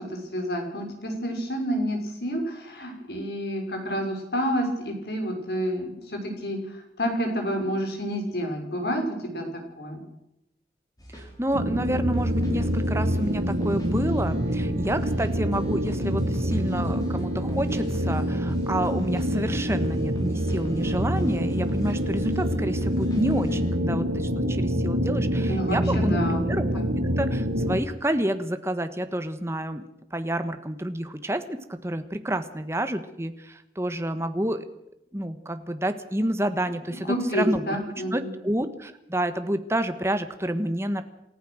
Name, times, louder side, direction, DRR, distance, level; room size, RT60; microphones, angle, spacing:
voice 1, 0.0-9.5 9.8-10.0 25.5-26.4 26.7-26.8 37.1-38.3, equal, 70° left, 3 dB, 5.9 m, -29 dB
sound 1, 11.0-23.8, right 1 dB, 20° left, 5.7 m, -45 dB
voice 2, 11.1-26.2 26.5-26.8 27.2-29.8 30.1-34.6 35.1-37.6 38.1-41.0, right 1 dB, 15° right, 9 dB, 1.4 m, -29 dB
sound 2, 11.5-27.8, equal, 75° right, 1.9 m, -26 dB
28.0 x 14.5 x 6.4 m, 0.84 s
head